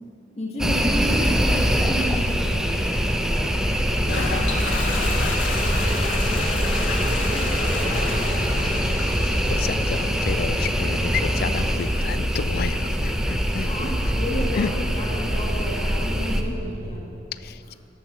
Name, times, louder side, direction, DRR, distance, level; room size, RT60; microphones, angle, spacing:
voice 1, 0.4-3.6 4.0-8.0 11.4-11.6 13.6-17.1, equal, 35° left, -3 dB, 1.9 m, -33 dB
sound 1, 0.6-16.4, equal, 5° right, 0.7 m, -23 dB
sound 2, 0.6-17.0, right 1 dB, 50° right, 1.0 m, -38 dB
Toilet flush, 3.9-15.4, left 3 dB, 70° left, 1.5 m, -34 dB
voice 2, 8.4-13.7 14.5-14.7 17.3-17.7, left 6 dB, 55° left, 14 dB, 0.4 m, -31 dB
13.5 x 11.0 x 6.3 m, 2.8 s
head